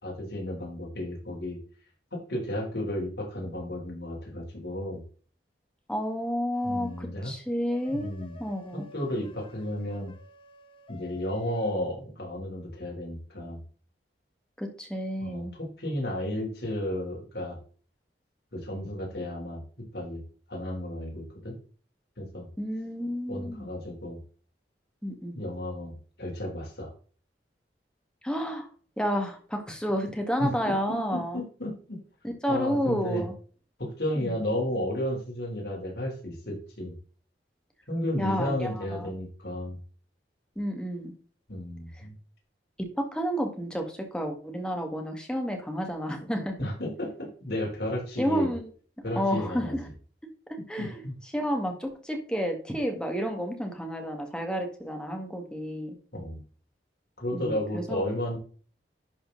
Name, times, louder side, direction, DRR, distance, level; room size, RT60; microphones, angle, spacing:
voice 1, 0.0-1.6 2.1-5.0 6.6-7.3 7.9-8.4 8.7-10.1 10.9-13.6 15.2-17.6 18.5-19.6 19.9-20.2 20.5-21.6 22.2-22.5 23.3-24.2 25.4-26.9 30.4-32.0 32.5-33.2 33.8-36.9 37.9-39.8 41.5-42.1 46.6-48.5 49.0-49.7 50.8-51.1 56.1-56.4 57.2-58.4, left 1 dB, 65° left, -1 dB, 3.6 m, -33 dB
voice 2, 5.9-8.1 8.4-8.9 14.6-15.5 22.6-23.7 25.0-25.4 28.2-28.7 29.0-31.4 32.4-33.3 34.2-34.4 38.2-39.1 40.6-41.1 41.9-42.1 42.8-46.5 48.2-48.7 49.0-49.9 50.7-51.0 51.3-56.0 57.3-58.1, equal, 5° left, 3 dB, 1.7 m, -30 dB
sound 1, 6.5-7.1 7.7-11.7, left 3 dB, 30° left, 1.1 m, -51 dB
11.0 x 4.3 x 3.9 m, 0.42 s
head